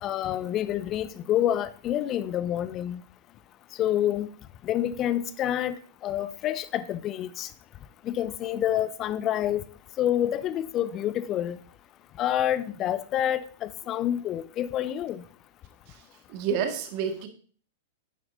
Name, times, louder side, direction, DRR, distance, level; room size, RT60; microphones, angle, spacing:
voice 1, 0.0-3.0 3.8-4.3 4.6-5.7 6.0-7.5 8.0-9.6 10.0-11.6 12.2-15.2, left 11 dB, 30° left, 0.6 m, -28 dB
voice 2, 16.3-17.3, right 7 dB, 45° right, 1.7 m, -28 dB
10.5 x 9.3 x 2.7 m
figure-of-eight pair, 100°, 0 cm